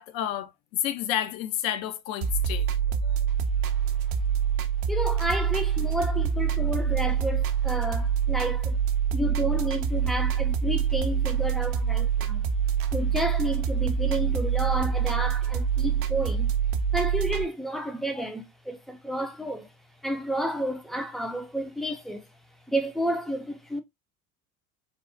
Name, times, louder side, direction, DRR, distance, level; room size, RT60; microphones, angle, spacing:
voice 1, 0.0-2.7 3.0-3.2, left 11 dB, 65° left, 0.6 m, -30 dB
sound 1, 2.2-17.4, right 7 dB, 60° right, 0.6 m, -26 dB
voice 2, 4.9-8.8 9.1-12.5 12.9-16.5 16.9-19.7 20.0-22.3 22.7-23.8, equal, ahead, 0.4 m, -31 dB
3.5 x 2.0 x 2.4 m
hypercardioid pair, 75°, 43 cm